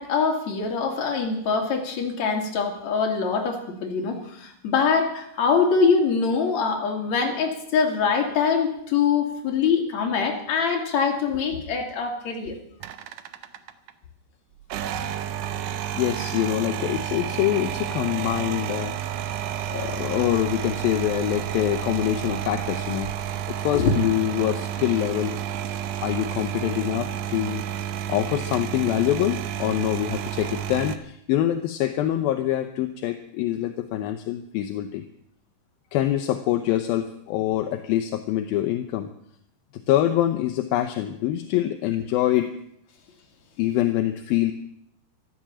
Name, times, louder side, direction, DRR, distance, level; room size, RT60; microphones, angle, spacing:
voice 1, 0.0-12.6 23.7-23.9, left 5 dB, 45° left, 1 dB, 3.4 m, -23 dB
sound 1, 12.8-13.9 14.6-31.0, right 10 dB, 85° right, 1.8 m, -30 dB
voice 2, 15.9-18.9 19.7-25.4 26.0-27.7 28.1-35.0 35.9-39.1 39.9-42.5 43.6-44.5, left 13 dB, 75° left, 7 dB, 2.3 m, -25 dB
14.0 x 13.0 x 7.5 m, 0.73 s
omnidirectional pair, 4.9 m